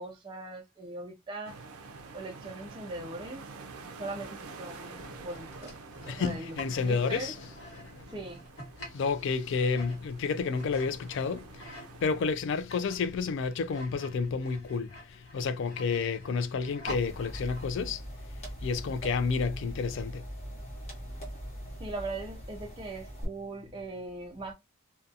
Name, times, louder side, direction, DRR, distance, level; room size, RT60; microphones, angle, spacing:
voice 1, 0.0-1.6 2.1-3.4 3.8-5.8 6.0-7.3 8.1-8.4 21.8-24.5, right 2 dB, 20° right, 0.4 m, -40 dB
sound 1, 1.4-12.3, right 4 dB, 85° right, 0.4 m, -48 dB
sound 2, 4.9-12.0 12.4-17.8, equal, 70° left, 1.1 m, -48 dB
voice 2, 6.1-7.4 7.8-8.1 8.9-18.0 18.6-20.2, left 5 dB, 55° left, 0.3 m, -30 dB
sound 3, 16.9-23.2, equal, 30° left, 0.9 m, -41 dB
2.6 x 2.2 x 2.4 m
head